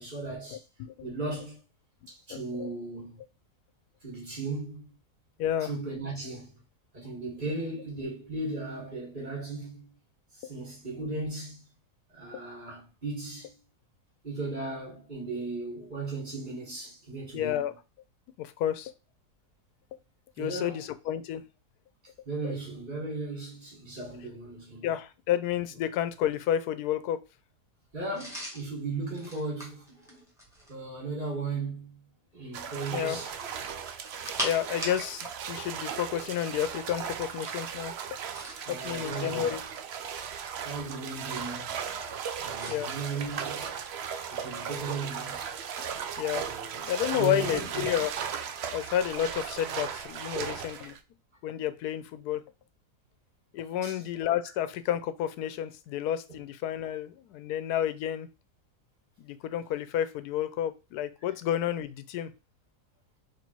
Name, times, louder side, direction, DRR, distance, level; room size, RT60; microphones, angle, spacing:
voice 1, 0.0-0.6 1.0-1.6 2.1-3.2 4.0-4.9 5.6-6.5 6.9-9.9 10.3-11.6 12.1-13.5 14.2-17.6 20.4-20.8 22.3-24.9 27.9-30.2 30.7-32.0 32.3-33.3 38.6-39.5 40.6-41.8 42.4-43.8 44.3-45.5 46.4-46.8 47.1-47.9 53.7-54.0 56.3-56.4, right 3 dB, 30° right, 2.1 m, -36 dB
voice 2, 0.5-0.9 2.3-2.7 5.4-5.7 17.3-17.7 18.4-18.9 20.4-21.4 24.8-27.2 32.9-33.2 34.4-37.9 38.7-39.6 41.9-42.1 42.7-42.9 46.2-46.4 46.8-48.1 48.7-50.9 51.4-52.4 53.5-58.3 59.2-62.3, left 11 dB, 80° left, 1.1 m, -30 dB
sound 1, 28.1-30.8 33.2-35.4 35.7-35.8 38.1-38.8 39.5-40.6 42.5-42.8, equal, ahead, 1.5 m, -40 dB
sound 2, 32.5-51.0, right 7 dB, 75° right, 0.5 m, -37 dB
4.1 x 2.9 x 4.4 m
omnidirectional pair, 1.7 m